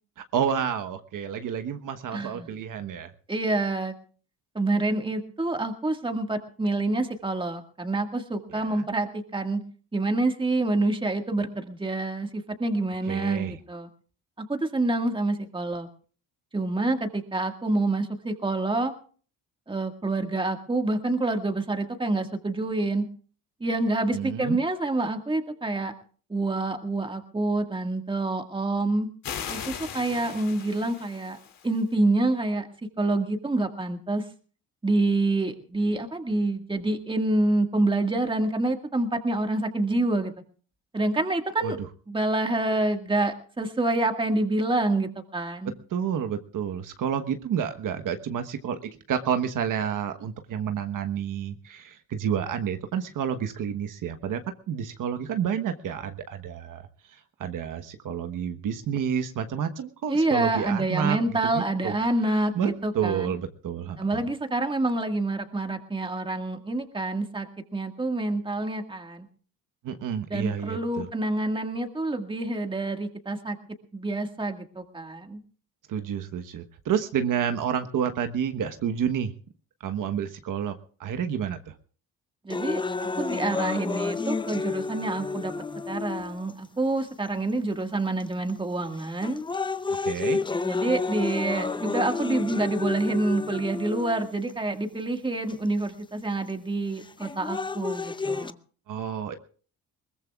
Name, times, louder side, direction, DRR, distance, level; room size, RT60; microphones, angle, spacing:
voice 1, 0.2-3.1 8.5-8.8 13.0-13.6 24.1-24.6 41.6-41.7 45.9-54.4 54.7-56.8 57.1-61.2 61.5-62.0 62.2-64.2 69.8-71.1 75.9-79.3 79.8-80.7 81.0-81.7 90.0-90.4 98.9-99.3, right 8 dB, 60° right, 7 dB, 1.2 m, -30 dB
voice 2, 2.1-2.5 3.3-3.9 4.6-9.6 9.9-13.9 14.5-15.9 16.5-18.9 19.7-23.0 23.6-25.9 26.3-29.1 29.5-31.4 31.6-32.7 33.0-34.2 34.8-40.3 40.9-41.8 42.1-45.7 60.1-63.3 64.0-67.5 67.7-69.3 70.3-73.6 73.9-75.4 82.4-82.8 83.2-85.5 85.9-89.4 90.6-98.5, right 2 dB, 15° right, 5 dB, 1.8 m, -27 dB
sound 1, 29.2-31.8, left 8 dB, 70° left, 3.0 m, -38 dB
sound 2, 82.5-86.5 87.3-87.4 88.2-88.5 89.0-94.5 95.5-95.6 97.0-98.5, left 4 dB, 15° left, 0.6 m, -30 dB
21.5 x 20.0 x 2.4 m, 0.42 s
cardioid pair, 100°, 35 cm